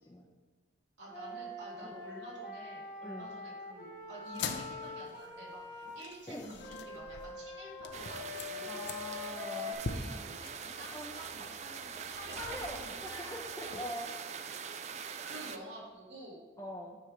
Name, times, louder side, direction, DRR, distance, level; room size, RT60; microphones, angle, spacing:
voice 1, 1.0-8.9 9.6-12.9 13.6-13.8 15.2-16.4, right 1 dB, 80° right, -5 dB, 2.3 m, -49 dB
Wind instrument woodwind instrument, 1.1-5.9 6.6-9.7, left 3 dB, 40° left, 1.1 m, -44 dB
voice 2, 3.0-3.3 6.3-6.5 8.7-9.8 10.9-11.1 12.3-14.1 16.6-17.0, equal, 15° left, -3 dB, 0.5 m, -43 dB
sound 1, 4.2-13.8, left 4 dB, 75° left, 0.6 m, -45 dB
sound 2, 7.9-15.6, right 6 dB, 35° right, 0.3 m, -43 dB
9.6 x 3.2 x 5.0 m, 1.3 s
head